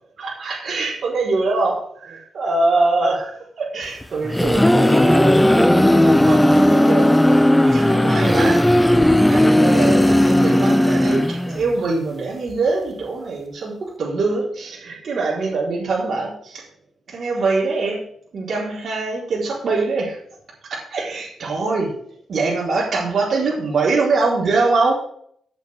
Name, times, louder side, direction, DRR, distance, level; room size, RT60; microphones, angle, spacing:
voice 1, 0.2-8.7 9.2-16.7 17.1-18.1 18.3-20.2 20.7-21.9 22.3-24.9, right 3 dB, 50° right, -5 dB, 4.1 m, -23 dB
sound 1, 4.0-11.7, left 1 dB, 5° left, 0.4 m, -15 dB
14.5 x 7.4 x 3.6 m, 0.64 s
wide cardioid pair, 175°, 0 cm